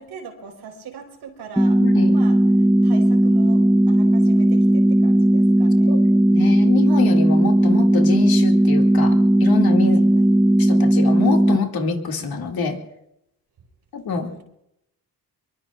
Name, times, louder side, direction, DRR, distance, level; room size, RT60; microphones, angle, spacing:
voice 1, 0.0-1.8 2.1-6.1 9.8-10.3 14.2-14.4, right 5 dB, 85° right, 3 dB, 4.3 m, -41 dB
sound 1, 1.6-11.6, right 1 dB, 5° right, 0.9 m, -16 dB
voice 2, 1.8-2.1 5.9-6.0 6.3-10.0 10.6-12.8 13.9-14.3, left 5 dB, 65° left, 2 dB, 2.3 m, -26 dB
24.5 x 23.0 x 2.4 m, 0.83 s
cardioid pair, 85°, 38 cm